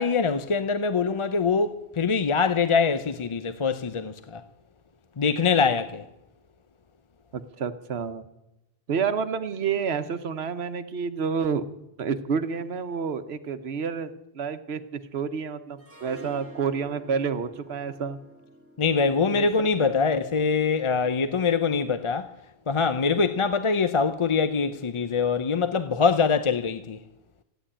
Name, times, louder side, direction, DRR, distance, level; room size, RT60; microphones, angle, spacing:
voice 1, 0.0-4.4 5.2-6.1 18.8-22.3 22.7-27.0, left 5 dB, 35° left, 0.6 m, -24 dB
voice 2, 7.3-8.3 8.9-11.6 12.0-18.2 19.3-20.2, right 6 dB, 90° right, 1.2 m, -29 dB
Harp, 15.8-20.9, left 1 dB, 15° right, 2.7 m, -49 dB
15.5 x 9.1 x 9.9 m
omnidirectional pair, 1.0 m